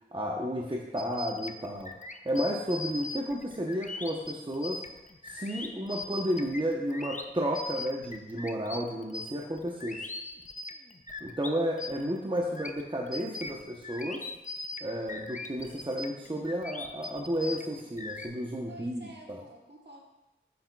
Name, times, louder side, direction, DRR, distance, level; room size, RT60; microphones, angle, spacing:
voice 1, 0.1-1.9 2.2-4.8 5.3-10.1 11.2-14.2 14.8-19.4, equal, 25° right, -1 dB, 0.8 m, -32 dB
sound 1, 1.0-11.5 11.8-18.3, left 2 dB, 40° left, 0.5 m, -40 dB
voice 2, 18.7-20.0, right 1 dB, 55° right, -2 dB, 1.4 m, -51 dB
7.8 x 6.9 x 2.3 m, 0.94 s
wide cardioid pair, 40°, 21 cm